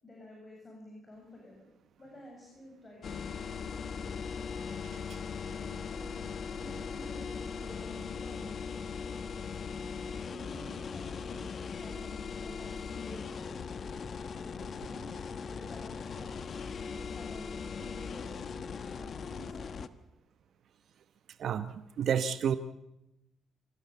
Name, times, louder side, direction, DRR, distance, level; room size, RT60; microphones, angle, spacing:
voice 1, 0.0-1.7 2.0-4.3 5.4-8.6 9.9-11.4 11.7-13.7 14.5-18.6 18.9-19.7, left 1 dB, 30° left, -1 dB, 7.9 m, -51 dB
sound 1, 3.0-19.9, left 5 dB, 50° left, 1.2 m, -39 dB
voice 2, 21.4-22.6, right 8 dB, 65° right, 11 dB, 1.0 m, -30 dB
26.0 x 16.0 x 8.2 m, 0.91 s
cardioid pair, 90°, 0 cm